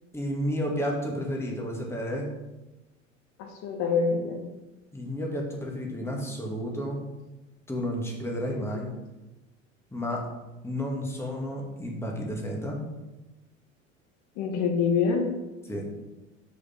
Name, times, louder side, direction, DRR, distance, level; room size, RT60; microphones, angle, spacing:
voice 1, 0.1-2.3 4.9-7.0 7.7-8.9 9.9-10.3 10.6-12.8 15.7-15.9, equal, 5° left, -1 dB, 1.8 m, -31 dB
voice 2, 3.4-4.6 8.4-8.7 14.3-15.3, left 5 dB, 45° left, 2 dB, 1.7 m, -26 dB
6.7 x 5.1 x 5.2 m, 1.0 s
figure-of-eight pair, 75°, 40 cm